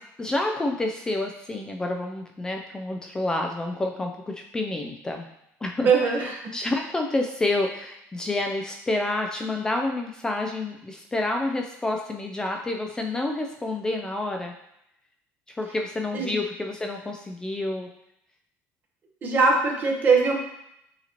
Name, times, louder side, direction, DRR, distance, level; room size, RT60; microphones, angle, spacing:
voice 1, 0.2-5.3 5.6-5.9 6.5-14.5 15.5-17.9, left 2 dB, 15° left, 2 dB, 0.3 m, -28 dB
voice 2, 5.8-6.5 16.1-16.4 19.2-20.3, right 4 dB, 35° right, 0 dB, 0.9 m, -21 dB
6.6 x 2.8 x 2.9 m, 0.80 s
cardioid pair, 135°, 5 cm